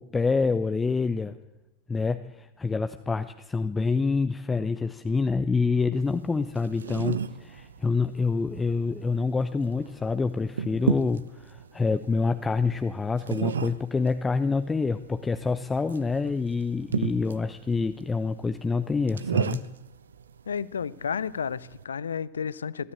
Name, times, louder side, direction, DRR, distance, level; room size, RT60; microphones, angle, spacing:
voice 1, 0.0-1.4 1.9-19.6, left 4 dB, 15° left, 10 dB, 0.9 m, -27 dB
sound 1, 6.0-21.8, right 6 dB, 70° right, 0.9 m, -35 dB
voice 2, 20.5-22.9, left 7 dB, 70° left, 20 dB, 0.6 m, -32 dB
23.5 x 13.5 x 8.4 m, 0.98 s
figure-of-eight pair, 90°, 0 cm